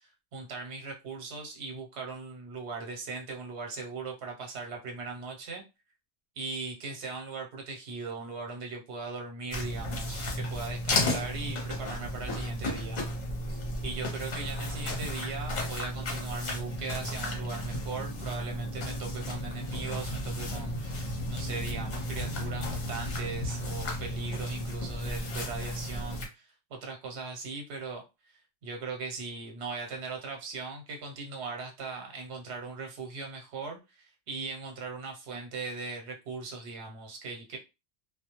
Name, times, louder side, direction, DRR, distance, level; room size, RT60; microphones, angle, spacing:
voice 1, 0.0-5.6 6.4-13.0 13.5-37.6, right 4 dB, 80° right, 2 dB, 1.0 m, -39 dB
sound 1, 9.5-26.3, left 1 dB, 50° left, 0.7 m, -34 dB
2.1 x 2.0 x 2.8 m, 0.26 s
omnidirectional pair, 1.1 m